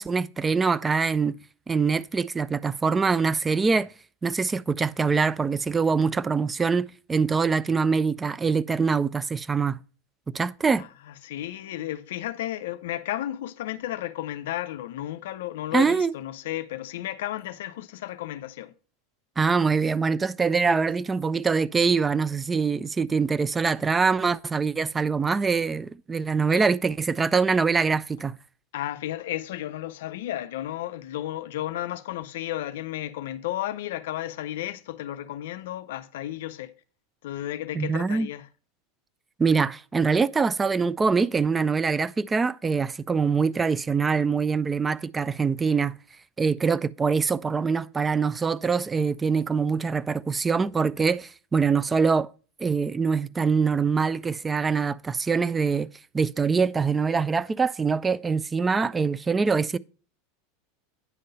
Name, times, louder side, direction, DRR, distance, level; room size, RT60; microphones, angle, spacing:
voice 1, 0.0-1.4 1.7-3.9 4.2-9.8 10.3-10.8 15.7-16.1 19.4-28.4 37.8-38.3 39.4-45.9 46.4-52.3 52.6-55.9 56.1-59.8, right 5 dB, 20° right, 0.3 m, -24 dB
voice 2, 10.8-18.7 20.6-20.8 26.5-26.6 28.7-36.7 37.2-38.5, left 13 dB, 75° left, 0.4 m, -33 dB
9.6 x 3.8 x 5.3 m
hypercardioid pair, 100°, 0 cm